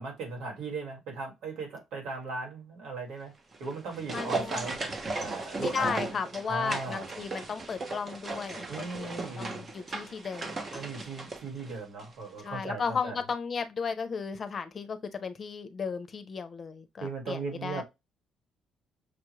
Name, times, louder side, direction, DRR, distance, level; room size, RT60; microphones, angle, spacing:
voice 1, 0.0-3.3 3.6-4.8 5.1-6.0 6.5-7.1 8.7-9.6 10.7-13.2 17.0-17.8, right 3 dB, 80° right, 2.0 m, -37 dB
sound 1, 3.5-12.1 12.4-12.5, right 3 dB, 30° right, 0.8 m, -37 dB
voice 2, 4.1-4.7 5.5-8.7 8.9-10.9 12.4-17.8, left 5 dB, 35° left, 0.7 m, -35 dB
6.1 x 2.4 x 3.1 m
cardioid pair, 140°, 0 cm